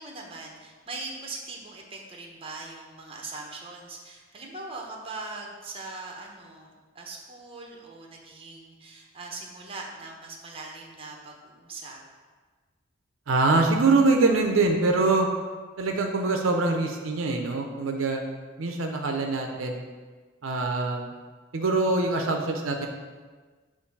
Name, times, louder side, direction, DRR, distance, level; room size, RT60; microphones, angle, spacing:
voice 1, 0.0-12.0, right 3 dB, 30° right, 0 dB, 0.8 m, -41 dB
voice 2, 13.3-15.3 15.8-18.2 18.6-19.8 20.4-21.1 21.5-22.9, right 3 dB, 80° right, 3 dB, 0.6 m, -24 dB
6.9 x 2.6 x 5.2 m, 1.4 s
head